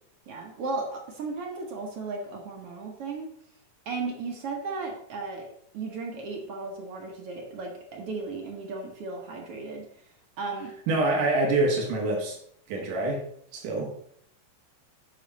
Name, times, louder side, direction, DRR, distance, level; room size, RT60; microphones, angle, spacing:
voice 1, 0.3-3.3 3.9-5.5 5.7-10.1 10.4-10.7, right 3 dB, 60° right, 1 dB, 1.8 m, -35 dB
voice 2, 10.9-12.4 12.7-13.2 13.5-13.9, right 2 dB, 90° right, -1 dB, 3.2 m, -25 dB
9.9 x 6.4 x 4.1 m, 0.67 s
omnidirectional pair, 3.6 m